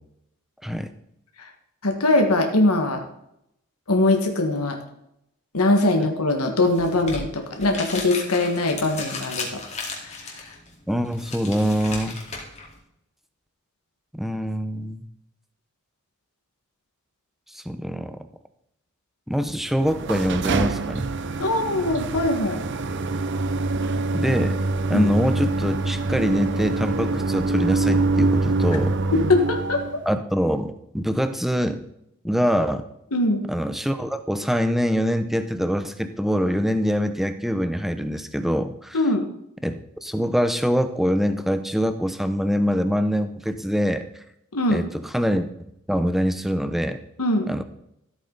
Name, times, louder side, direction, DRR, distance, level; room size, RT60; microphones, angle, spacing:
voice 1, 1.8-3.0 3.9-4.8 5.5-9.6 10.0-10.5 21.4-22.6 24.9-25.1 29.1-29.8 33.1-33.4 38.9-39.2 44.5-44.8 47.2-47.5, left 2 dB, 90° left, 4 dB, 1.6 m, -22 dB
sound 1, 6.6-12.8, left 3 dB, 30° left, 2.4 m, -36 dB
voice 2, 10.9-12.2 14.1-15.1 17.5-18.2 19.3-21.1 23.1-23.2 24.1-24.6 24.9-28.9 30.1-31.8 32.2-32.8 33.5-39.0 39.6-44.0 44.7-45.5 45.9-47.0 47.5-47.6, equal, ahead, 9 dB, 0.6 m, -24 dB
sound 2, 19.7-30.0, right 3 dB, 55° right, 0.6 m, -25 dB
14.0 x 8.3 x 3.9 m, 0.80 s
head